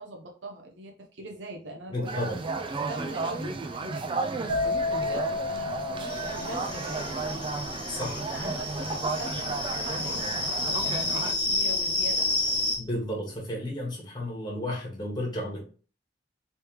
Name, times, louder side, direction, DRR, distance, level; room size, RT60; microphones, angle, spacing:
voice 1, 0.0-2.2 2.9-4.0 4.7-7.3 8.2-12.5, right 1 dB, 80° right, 1 dB, 0.7 m, -42 dB
voice 2, 1.9-2.5 3.9-4.0 7.9-8.3 12.8-15.6, left 1 dB, 25° left, -1 dB, 1.2 m, -33 dB
sound 1, 2.0-11.3, right 3 dB, 25° right, 0.3 m, -33 dB
sound 2, 4.5-12.1 12.3-12.8, left 3 dB, 70° left, 0.9 m, -34 dB
sound 3, 6.1-12.8, left 2 dB, 5° left, 1.2 m, -30 dB
3.2 x 3.2 x 3.0 m, 0.38 s
head